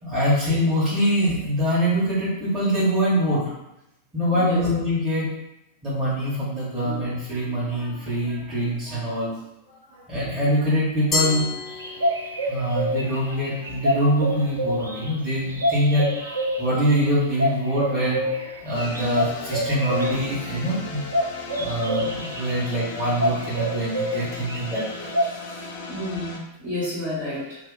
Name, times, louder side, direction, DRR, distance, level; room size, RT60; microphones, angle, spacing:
voice 1, 0.0-3.4 4.1-5.3 5.8-9.4 9.7-11.6 12.5-18.3 18.6-21.0 21.5-25.1, equal, 10° right, -13 dB, 1.4 m, -24 dB
Glass, 11.1-12.6, left 3 dB, 20° left, 0.7 m, -28 dB
sound 1, 11.7-25.2, equal, 75° right, 0.4 m, -28 dB
sound 2, 18.7-26.4, left 3 dB, 55° left, 0.5 m, -37 dB
voice 2, 25.3-27.6, left 1 dB, 45° right, -10 dB, 1.5 m, -31 dB
2.7 x 2.0 x 4.0 m, 0.86 s
figure-of-eight pair, 90°, 0 cm